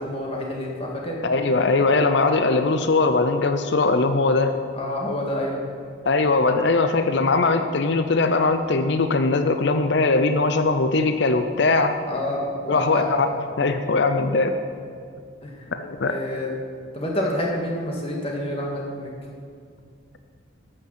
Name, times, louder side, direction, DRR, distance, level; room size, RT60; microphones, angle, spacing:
voice 1, 0.0-1.2 4.7-5.6 12.1-13.1 15.4-15.7 16.0-16.6 16.9-19.1, left 1 dB, 30° left, -1 dB, 1.8 m, -28 dB
voice 2, 1.2-4.5 6.1-12.0 12.7-13.3 13.6-14.6 15.8-16.2, left 3 dB, 60° left, 8 dB, 0.6 m, -20 dB
12.5 x 6.5 x 7.4 m, 2.2 s
head